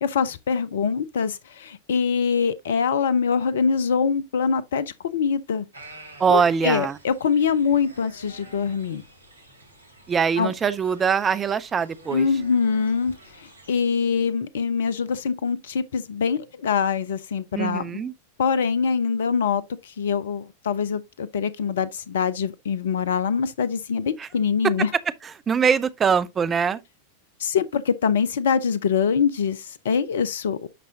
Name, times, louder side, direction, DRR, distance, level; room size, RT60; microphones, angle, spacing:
voice 1, 0.0-5.7 6.3-9.0 10.4-10.5 12.1-17.9 18.4-24.9 27.4-30.7, left 6 dB, 60° left, 0.5 m, -24 dB
sound 1, 5.7-13.8, right 1 dB, 75° right, 2.3 m, -49 dB
voice 2, 6.2-7.0 10.1-12.3 17.5-18.1 24.2-24.3 25.5-26.8, right 6 dB, 20° right, 0.7 m, -22 dB
10.0 x 5.5 x 2.7 m
figure-of-eight pair, 90°, 0 cm